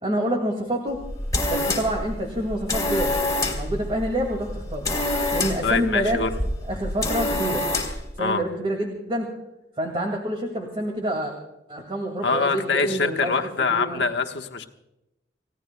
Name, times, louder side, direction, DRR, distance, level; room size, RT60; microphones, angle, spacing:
voice 1, 0.0-1.0 1.5-3.1 3.4-4.9 5.3-6.2 6.7-7.7 8.2-9.3 9.8-11.3 11.7-14.0, right 1 dB, 30° right, 2 dB, 2.1 m, -27 dB
sound 1, 0.9-8.1, left 2 dB, 20° left, 2.7 m, -27 dB
voice 2, 5.6-6.4 8.2-8.4 12.2-14.6, left 4 dB, 70° left, 4 dB, 1.3 m, -24 dB
29.5 x 17.0 x 2.3 m, 0.91 s
head